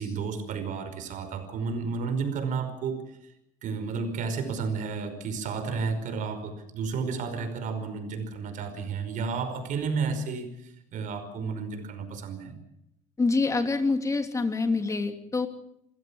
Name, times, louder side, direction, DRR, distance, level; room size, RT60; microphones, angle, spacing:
voice 1, 0.0-3.0 3.6-12.5, right 5 dB, 60° right, 9 dB, 5.2 m, -32 dB
voice 2, 13.2-15.5, left 3 dB, 20° left, 6 dB, 3.0 m, -26 dB
28.0 x 16.0 x 7.2 m, 0.79 s
cardioid pair, 120°, 15 cm